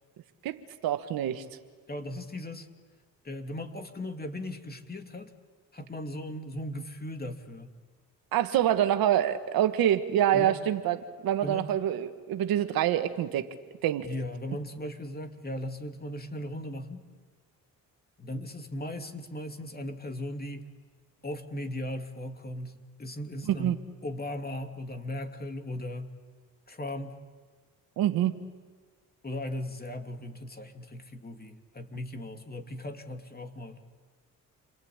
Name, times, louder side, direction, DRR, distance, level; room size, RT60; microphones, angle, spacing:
voice 1, 0.4-1.4 8.3-11.0 11.2-13.5 13.8-14.1 23.5-23.8 28.0-28.3, right 11 dB, 80° right, 9 dB, 1.5 m, -26 dB
voice 2, 1.9-2.7 3.2-5.3 5.7-7.8 10.3-10.6 11.4-11.7 14.0-17.1 18.2-20.7 21.2-26.2 26.7-27.2 29.2-33.8, left 1 dB, 25° left, 5 dB, 3.0 m, -37 dB
28.5 x 23.5 x 8.8 m, 1.5 s
supercardioid pair, 65°, 35 cm